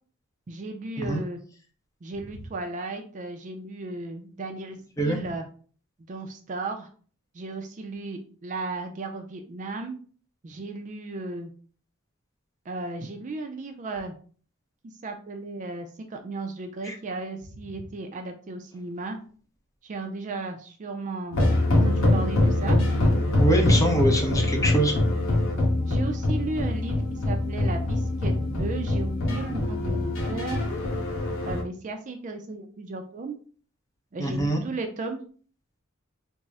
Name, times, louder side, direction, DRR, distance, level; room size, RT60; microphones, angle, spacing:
voice 1, 0.5-1.4 2.0-4.8 5.0-5.5 6.1-6.9 7.3-9.9 10.4-11.5 12.7-14.2 15.0-19.2 19.8-21.4 21.8-22.8 25.8-30.6 31.5-33.4 34.1-35.2, right 3 dB, 35° right, 5 dB, 0.4 m, -35 dB
sound 1, 21.3-31.6, left 1 dB, 65° left, 1.0 m, -24 dB
voice 2, 23.4-24.9 34.2-34.6, right 1 dB, 15° left, 1 dB, 0.7 m, -24 dB
3.5 x 2.0 x 4.0 m, 0.42 s
head